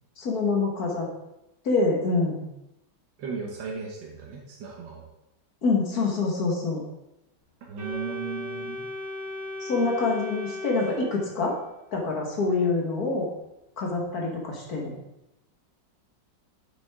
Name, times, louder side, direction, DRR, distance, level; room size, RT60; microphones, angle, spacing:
voice 1, 0.2-1.1 1.7-2.5 5.6-6.8 9.6-11.5 11.9-13.3 13.8-15.0, left 3 dB, 60° left, -1 dB, 1.8 m, -26 dB
voice 2, 3.2-5.1 7.7-8.9, right 5 dB, 85° right, -1 dB, 1.7 m, -36 dB
Organ, 7.8-11.7, left 2 dB, 45° right, 1.5 m, -36 dB
7.6 x 6.1 x 3.6 m, 0.91 s
omnidirectional pair, 1.9 m